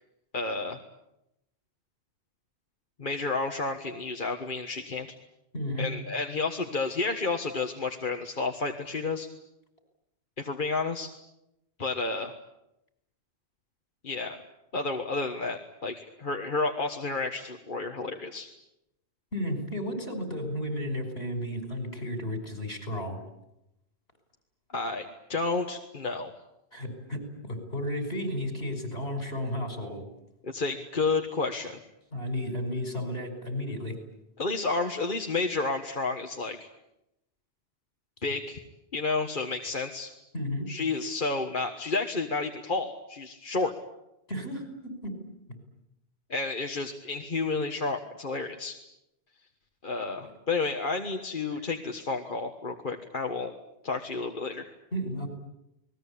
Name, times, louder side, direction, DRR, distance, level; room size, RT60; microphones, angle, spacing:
voice 1, 0.3-0.8 3.0-5.1 5.8-9.3 10.4-11.1 11.8-12.3 14.0-14.4 14.7-18.5 24.7-26.4 30.4-31.8 34.4-36.7 38.2-38.6 38.9-40.1 40.7-43.7 46.3-48.8 49.8-53.5 53.8-54.6, left 3 dB, 50° left, 3 dB, 1.7 m, -31 dB
voice 2, 5.5-5.9 19.3-23.2 26.7-30.0 32.1-34.0 40.3-40.7 44.3-45.2 51.5-51.6 54.9-55.3, left 1 dB, 65° left, 6 dB, 5.8 m, -33 dB
29.0 x 20.0 x 8.6 m, 0.86 s
omnidirectional pair, 1.1 m